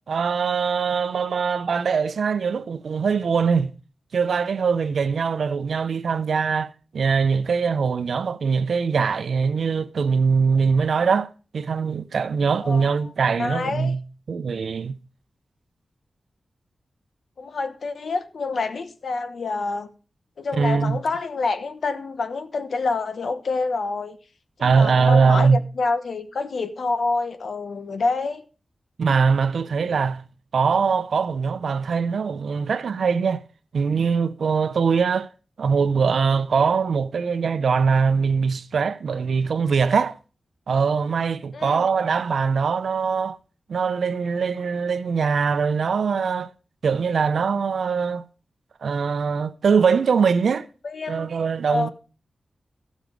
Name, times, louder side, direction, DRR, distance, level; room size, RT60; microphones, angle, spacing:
voice 1, 0.1-3.7 4.1-11.3 11.5-14.0 14.3-14.9 20.5-21.0 24.6-25.6 29.0-30.2 30.5-33.4 33.7-35.3 35.6-40.2 40.7-43.4 43.7-46.5 46.8-48.2 48.8-50.7 51.1-51.9, right 5 dB, 85° right, 0.6 m, -22 dB
voice 2, 12.6-13.1 13.4-13.9 17.4-19.9 20.4-24.2 24.7-28.4 41.5-41.9 50.8-51.3 51.7-51.9, left 3 dB, 70° left, 1.1 m, -27 dB
14.0 x 6.1 x 5.2 m
wide cardioid pair, 120°, 0 cm